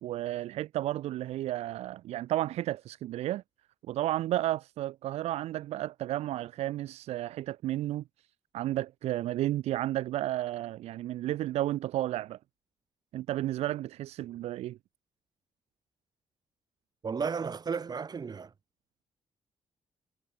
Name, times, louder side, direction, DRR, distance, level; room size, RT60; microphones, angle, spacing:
voice 1, 0.0-3.4 3.9-8.0 8.5-12.4 13.1-14.8, right 14 dB, 85° right, 1.2 m, -32 dB
voice 2, 17.0-18.5, right 5 dB, 40° right, 1.0 m, -33 dB
supercardioid pair, 65°, 11 cm